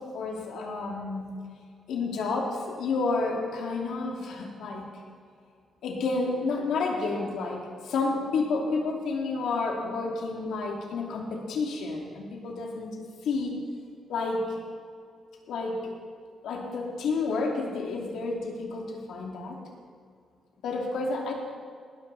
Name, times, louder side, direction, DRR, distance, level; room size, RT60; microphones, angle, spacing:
voice 1, 0.0-1.3 1.9-4.8 5.8-12.9 13.2-13.5 14.1-14.4 15.5-16.0 16.4-19.6 20.6-21.3, left 3 dB, 80° left, 0 dB, 2.9 m, -30 dB
19.5 x 13.0 x 4.2 m, 2.2 s
wide cardioid pair, 175°, 0 cm